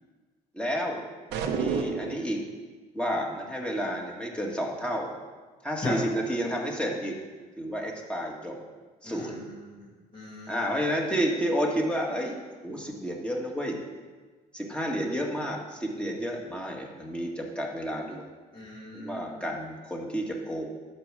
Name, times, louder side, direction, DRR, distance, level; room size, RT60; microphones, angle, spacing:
voice 1, 0.5-1.0 1.3-2.4 2.9-5.1 5.6-7.2 7.6-8.6 9.0-9.5 10.5-12.4 12.6-13.8 14.5-18.3 18.9-20.7, equal, 5° left, -1 dB, 2.1 m, -31 dB
sound 1, 1.3-2.3, right 5 dB, 85° right, 1.0 m, -29 dB
voice 2, 9.0-9.9 10.1-10.6 18.5-19.4, left 2 dB, 30° left, -6 dB, 2.2 m, -38 dB
11.5 x 5.4 x 7.6 m, 1.4 s
cardioid pair, 110°, 17 cm